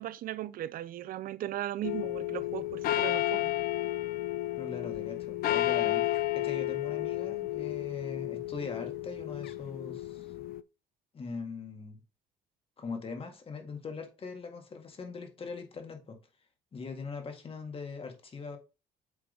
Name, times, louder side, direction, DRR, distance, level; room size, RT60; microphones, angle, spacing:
voice 1, 0.0-3.5, right 13 dB, 55° right, 0.5 m, -37 dB
sound 1, 1.8-10.6, left 15 dB, 60° left, 0.5 m, -32 dB
voice 2, 4.6-10.3 11.1-12.0 12.8-16.2 16.7-18.6, left 4 dB, 35° left, 1.9 m, -41 dB
8.5 x 3.7 x 3.8 m
cardioid pair, 110°, 17 cm